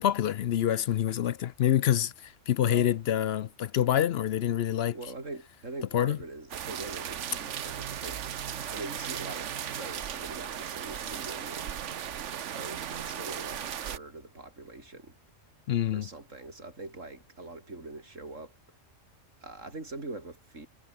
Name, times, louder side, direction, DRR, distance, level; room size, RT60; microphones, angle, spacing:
voice 1, 0.0-5.0 5.9-6.2 15.7-16.1, left 11 dB, 65° left, 0.8 m, -26 dB
voice 2, 2.6-2.9 4.9-8.2 8.7-11.8 12.4-15.2 15.9-18.5 19.4-20.7, right 2 dB, 90° right, 4.7 m, -43 dB
sound 1, 6.5-14.0, right 9 dB, 75° right, 1.2 m, -36 dB
omnidirectional pair, 1.3 m